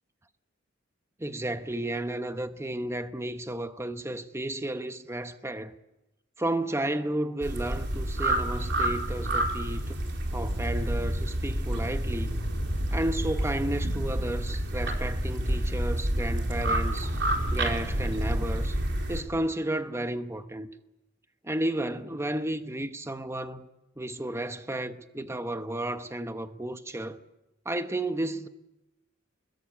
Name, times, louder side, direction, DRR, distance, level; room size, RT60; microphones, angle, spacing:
voice 1, 1.2-5.7 6.4-10.0 10.3-12.3 12.9-17.2 17.5-18.8 19.1-20.7 21.4-23.7 24.0-27.2 27.6-28.5, right 1 dB, 15° right, 1.0 m, -32 dB
sound 1, 7.4-19.2, right 1 dB, 60° right, 3.9 m, -29 dB
25.5 x 21.5 x 8.4 m
head